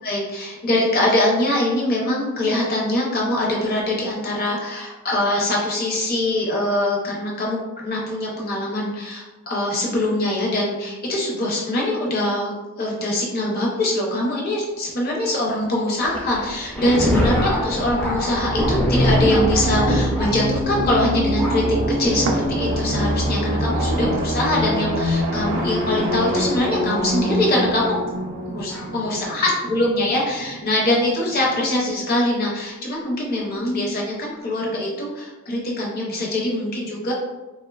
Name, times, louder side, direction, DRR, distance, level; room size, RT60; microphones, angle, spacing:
voice 1, 0.0-21.6 22.0-28.0 28.4-37.1, left 1 dB, 45° left, -3 dB, 0.6 m, -23 dB
Thunder, 16.0-25.9 26.7-26.8 27.8-27.9 28.7-28.9, left 1 dB, 5° left, 0.4 m, -27 dB
sound 1, 18.3-29.9, equal, 45° right, 0.6 m, -24 dB
sound 2, 22.3-32.2 32.8-32.9, right 3 dB, 80° right, 0.3 m, -36 dB
2.9 x 2.1 x 2.3 m, 1.1 s
head